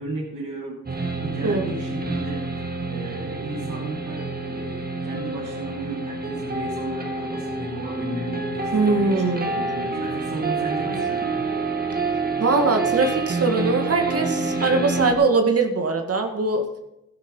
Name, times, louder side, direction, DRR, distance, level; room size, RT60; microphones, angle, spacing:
voice 1, 0.0-2.5 2.9-11.6, right 2 dB, 90° right, -6 dB, 3.5 m, -35 dB
sound 1, 0.9-15.1, right 3 dB, 30° right, 2.4 m, -28 dB
voice 2, 8.7-9.5 12.4-16.7, right 3 dB, 50° right, 5 dB, 2.1 m, -21 dB
12.5 x 11.0 x 5.5 m, 0.84 s
cardioid pair, 60°, 30 cm